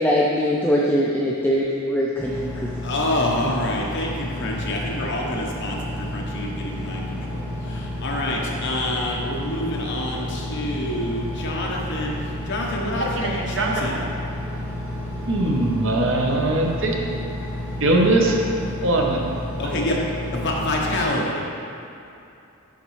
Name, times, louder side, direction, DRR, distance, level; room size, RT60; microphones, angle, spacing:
voice 1, 0.0-2.5 2.8-2.9, equal, 10° left, -4 dB, 0.4 m, -21 dB
Engine, 2.2-21.0, left 1 dB, 10° right, 1.2 m, -31 dB
voice 2, 2.8-14.0 19.6-20.0 20.3-21.4, left 1 dB, 55° left, -2 dB, 1.0 m, -27 dB
voice 3, 12.9-14.0 15.3-17.0 17.8-18.4 18.8-19.2 19.6-19.7, right 2 dB, 60° right, 0 dB, 0.8 m, -21 dB
11.5 x 4.0 x 3.2 m, 2.7 s
head